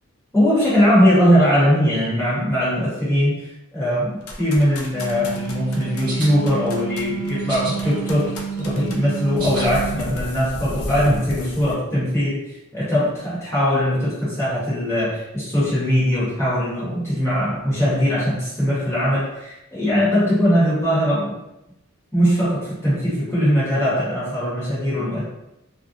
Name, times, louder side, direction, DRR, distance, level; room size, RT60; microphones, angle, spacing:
voice 1, 0.3-3.4 3.7-12.4 12.7-21.4 22.1-25.2, equal, 10° left, -10 dB, 1.1 m, -20 dB
sound 1, 4.2-11.7, left 1 dB, 75° left, 0.5 m, -34 dB
Wind instrument woodwind instrument, 4.8-10.1, right 7 dB, 45° right, 0.5 m, -30 dB
sound 2, 5.7-6.3 7.4-7.7 8.2-9.7, right 2 dB, 85° right, 0.9 m, -33 dB
2.6 x 2.2 x 2.4 m, 0.90 s
head